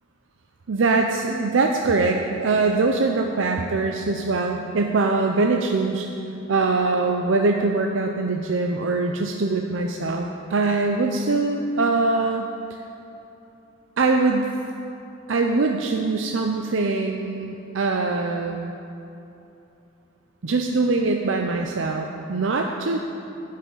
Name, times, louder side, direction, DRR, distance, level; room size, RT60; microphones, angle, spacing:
voice 1, 0.7-6.1 6.5-12.5 14.0-14.5 15.3-18.7 20.4-23.0, right 3 dB, 80° right, 3 dB, 0.6 m, -22 dB
11.0 x 5.7 x 8.7 m, 2.9 s
head